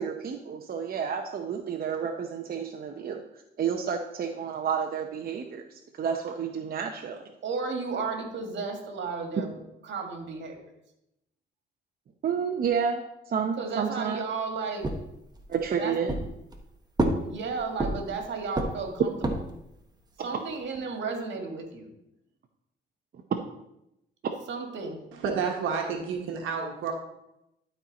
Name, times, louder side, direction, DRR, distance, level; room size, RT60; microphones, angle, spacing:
voice 1, 0.0-3.2 3.6-7.2 12.2-14.2 15.5-16.1 20.2-20.4 23.3-23.4 24.2-24.3, right 7 dB, 50° right, 3 dB, 0.7 m, -30 dB
voice 2, 7.4-9.6 9.9-10.6 13.6-14.9 15.8-15.9 17.2-19.1 20.2-21.9 24.5-25.0, right 4 dB, 65° right, 3 dB, 1.9 m, -33 dB
sound 1, 14.8-15.7 16.1-16.7 17.0-18.2 18.5-19.6, right 1 dB, 20° right, 1.2 m, -29 dB
voice 3, 25.1-26.9, right 6 dB, 85° right, 2 dB, 1.2 m, -30 dB
11.5 x 4.4 x 4.1 m, 0.86 s
cardioid pair, 90°, 20 cm